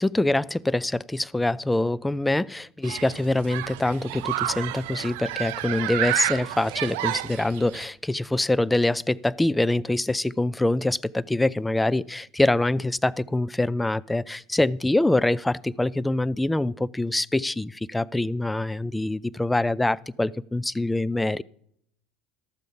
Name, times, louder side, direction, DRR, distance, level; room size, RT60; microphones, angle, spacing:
voice 1, 0.0-21.4, left 2 dB, 10° left, 0.3 m, -25 dB
Human group actions, 2.8-7.9, right 15 dB, 65° right, 0.4 m, -30 dB
12.0 x 7.7 x 5.2 m
hypercardioid pair, 70°, 0 cm